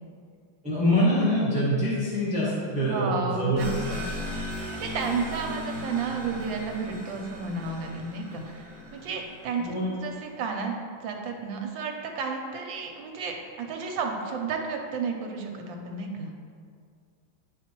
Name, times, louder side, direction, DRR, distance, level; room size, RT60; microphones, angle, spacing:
voice 1, 0.6-3.7 9.6-9.9, equal, 5° right, -9 dB, 1.0 m, -25 dB
voice 2, 2.8-4.0 4.8-10.7 11.0-16.3, right 5 dB, 70° right, 2 dB, 1.3 m, -32 dB
sound 1, 3.6-9.8, left 1 dB, 40° right, 0.8 m, -37 dB
9.5 x 4.4 x 3.0 m, 2.2 s
omnidirectional pair, 2.3 m